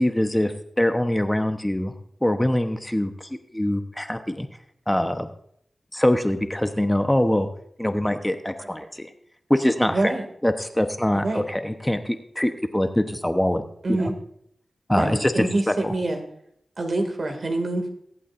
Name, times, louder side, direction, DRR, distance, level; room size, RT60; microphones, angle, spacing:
voice 1, 0.0-1.9 2.2-3.1 3.5-4.5 4.9-5.3 5.9-7.5 7.8-9.1 9.5-10.0 10.4-14.1 14.9-15.9, left 1 dB, 10° left, 7 dB, 1.0 m, -23 dB
voice 2, 9.9-10.2 11.1-11.4 13.8-14.1 15.0-16.2 16.8-17.9, right 2 dB, 65° right, 4 dB, 2.3 m, -25 dB
23.0 x 8.5 x 2.6 m, 0.69 s
cardioid pair, 50°, 0 cm